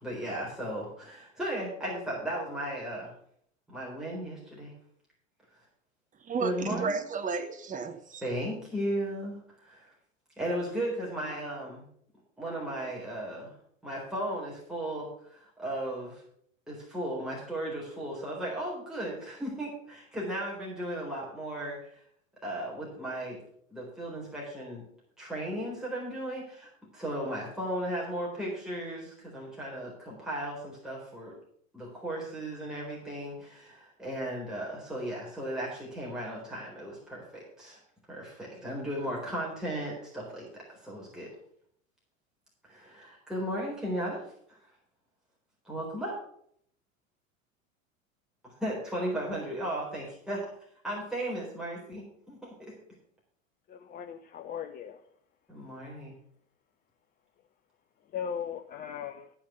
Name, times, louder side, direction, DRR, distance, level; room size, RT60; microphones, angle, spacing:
voice 1, 0.0-3.1 3.7-4.7 6.4-6.9 8.2-9.9 10.4-11.9 12.4-13.6 13.8-16.2 16.7-22.0 22.4-23.4 23.7-24.8 25.2-31.3 31.7-37.8 38.1-41.3 42.6-44.2 44.5-44.6 45.6-46.1 48.4-50.5 50.8-52.5 55.5-56.2, right 1 dB, ahead, -5 dB, 4.0 m, -36 dB
voice 2, 6.2-8.2, right 5 dB, 20° right, 7 dB, 1.0 m, -32 dB
voice 3, 53.7-55.0 58.1-59.3, left 8 dB, 20° left, 6 dB, 0.6 m, -38 dB
13.5 x 5.8 x 6.8 m, 0.66 s
figure-of-eight pair, 85°, 41 cm